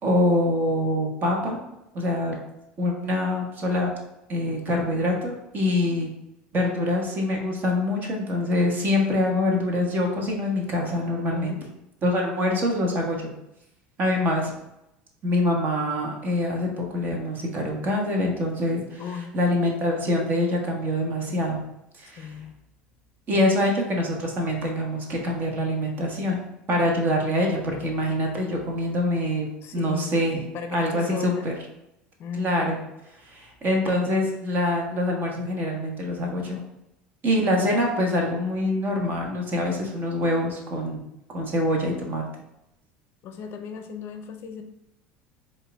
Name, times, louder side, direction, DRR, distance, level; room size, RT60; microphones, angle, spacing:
voice 1, 0.0-1.6 1.9-2.4 2.8-3.9 4.3-6.1 6.5-11.6 12.0-13.3 14.0-14.5 15.2-19.0 19.3-21.6 22.0-22.3 23.3-26.4 26.7-30.4 30.7-31.5 32.4-32.8 33.2-36.6 37.2-41.0 41.3-42.2, left 1 dB, 40° right, 1 dB, 1.2 m, -25 dB
voice 2, 11.3-11.6 19.0-19.3 22.2-22.5 29.6-30.2 30.5-31.5 32.2-32.7 43.2-44.6, left 6 dB, 50° left, 6 dB, 0.6 m, -35 dB
4.4 x 2.5 x 3.4 m, 0.87 s
hypercardioid pair, 85°, 5 cm